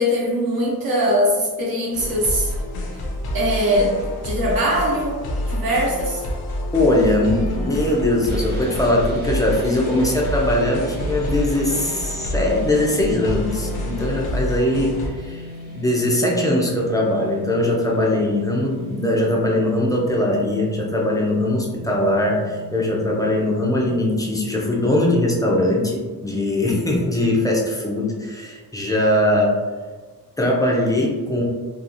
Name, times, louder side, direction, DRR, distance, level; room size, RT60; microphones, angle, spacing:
voice 1, 0.0-2.5 3.3-4.0 4.2-6.2, equal, 65° right, -4 dB, 0.9 m, -21 dB
sound 1, 1.9-15.1, left 1 dB, 70° left, 0.5 m, -28 dB
voice 2, 6.7-29.5 30.4-31.4, left 1 dB, 10° left, -2 dB, 0.3 m, -21 dB
sound 2, 8.3-23.9, left 1 dB, 25° right, 0.7 m, -38 dB
2.8 x 2.3 x 2.4 m, 1.4 s
wide cardioid pair, 160°, 39 cm